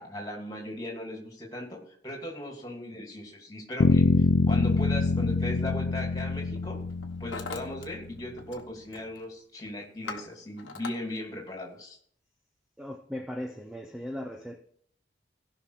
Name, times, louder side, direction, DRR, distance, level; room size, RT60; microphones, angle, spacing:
voice 1, 0.0-6.8 7.2-12.0, left 1 dB, 20° left, 0 dB, 2.6 m, -38 dB
sound 1, 3.8-7.8, left 4 dB, 55° left, 0.4 m, -25 dB
Hammer, 5.3-5.6 6.3-6.6 6.9-7.9 8.1-8.7 8.9-9.3 9.7-11.0, left 4 dB, 85° left, 1.2 m, -41 dB
voice 2, 12.8-14.6, left 1 dB, 5° right, 4 dB, 0.6 m, -38 dB
16.5 x 5.9 x 4.8 m, 0.63 s
head